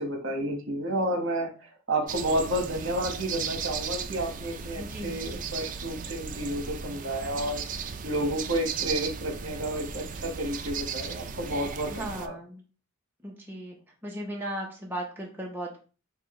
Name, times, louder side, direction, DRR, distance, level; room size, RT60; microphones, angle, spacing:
voice 1, 0.0-7.6 8.0-12.3, right 1 dB, 65° right, 2 dB, 1.3 m, -31 dB
sound 1, 2.1-12.3, right 6 dB, 40° right, 0.4 m, -36 dB
voice 2, 4.8-5.4 11.9-12.6 13.2-15.8, right 1 dB, 10° right, -2 dB, 0.9 m, -37 dB
6.7 x 2.4 x 3.1 m, 0.35 s
head